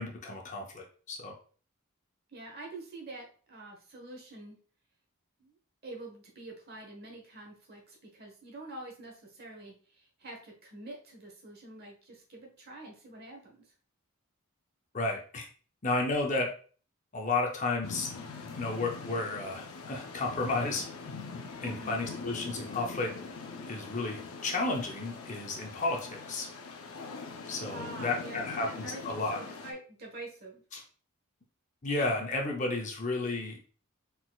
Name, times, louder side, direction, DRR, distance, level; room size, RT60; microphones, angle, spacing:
voice 1, 0.0-1.3 14.9-15.5 15.8-16.5 17.1-18.1 18.6-20.9 21.6-23.1 23.7-26.5 27.5-29.4 30.7-30.8 31.8-33.7, left 3 dB, 35° left, 1 dB, 0.6 m, -32 dB
voice 2, 2.3-4.6 5.4-5.5 5.8-13.6 21.6-22.0 27.7-30.6, right 2 dB, 45° right, 0 dB, 1.2 m, -46 dB
sound 1, 17.8-29.7, left 4 dB, 75° left, 0.6 m, -43 dB
4.1 x 4.1 x 2.3 m, 0.42 s
head